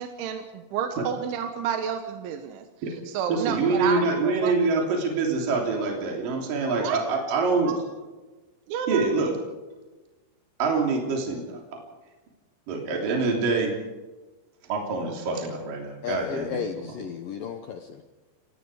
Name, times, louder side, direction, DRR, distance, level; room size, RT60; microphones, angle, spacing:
voice 1, 0.0-4.5 6.8-7.0 7.7-7.8 8.7-9.1, right 8 dB, 75° right, 5 dB, 3.7 m, -30 dB
voice 2, 3.3-7.8 8.9-9.4 10.6-11.8 12.7-13.8 14.7-17.0, right 4 dB, 50° right, 1 dB, 4.6 m, -25 dB
voice 3, 16.0-18.0, left 7 dB, 70° left, 6 dB, 2.1 m, -33 dB
29.5 x 17.5 x 5.0 m, 1.2 s
omnidirectional pair, 5.6 m